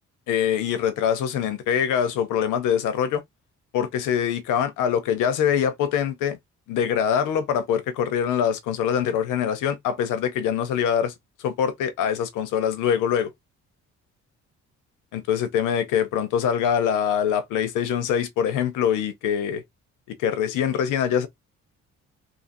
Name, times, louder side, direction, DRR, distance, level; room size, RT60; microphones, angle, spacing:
voice 1, 0.3-3.2 3.7-6.4 6.7-13.3 15.1-19.6 20.1-21.3, left 8 dB, 90° left, 0.6 m, -24 dB
2.7 x 2.6 x 2.6 m
cardioid pair, 90°, 30 cm